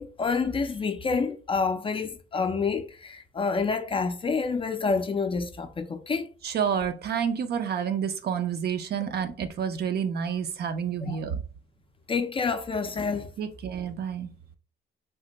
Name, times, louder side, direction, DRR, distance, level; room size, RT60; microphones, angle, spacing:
voice 1, 0.0-6.3 11.0-11.2 12.1-13.3, left 4 dB, 25° left, 0.3 m, -28 dB
voice 2, 6.4-11.4 13.4-14.3, right 7 dB, 55° right, 0.5 m, -29 dB
3.3 x 2.1 x 2.9 m
cardioid pair, 90°, 20 cm